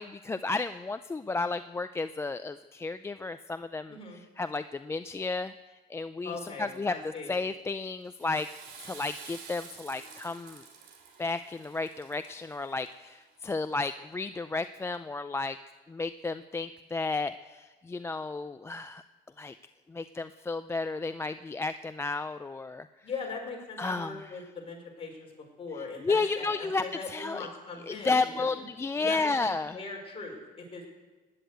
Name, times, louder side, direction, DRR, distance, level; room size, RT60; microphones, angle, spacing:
voice 1, 0.0-4.0 4.4-5.5 5.9-6.9 7.3-8.5 8.8-10.6 11.2-15.6 15.9-19.0 19.4-19.6 19.9-22.9 23.8-24.1 26.0-27.5 27.9-29.8, left 3 dB, 15° left, 11 dB, 0.4 m, -32 dB
voice 2, 3.9-4.2 6.2-7.3 23.0-25.3 25.6-28.5 29.0-29.2 29.4-30.9, left 4 dB, 35° left, 0 dB, 5.1 m, -40 dB
Water / Toilet flush, 8.0-13.2, right 6 dB, 80° right, 3.0 m, -50 dB
17.0 x 10.0 x 8.0 m, 1.2 s
cardioid pair, 110°, 17 cm